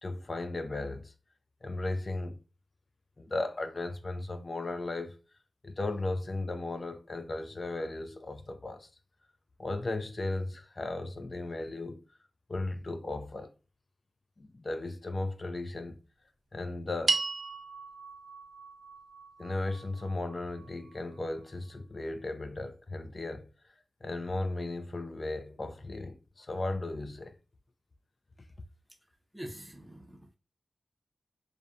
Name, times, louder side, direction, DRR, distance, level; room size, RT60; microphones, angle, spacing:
voice 1, 0.0-1.1 1.6-2.4 3.2-5.1 5.6-8.9 9.6-12.0 12.5-13.5 14.4-16.0 16.5-17.2 19.4-23.5 24.0-27.4, left 2 dB, 45° left, 0.3 m, -36 dB
sound 1, 17.1-21.5, right 4 dB, 75° right, 0.3 m, -36 dB
voice 2, 28.9-30.4, equal, 20° right, 0.6 m, -46 dB
2.6 x 2.1 x 2.3 m
wide cardioid pair, 70°, 0 cm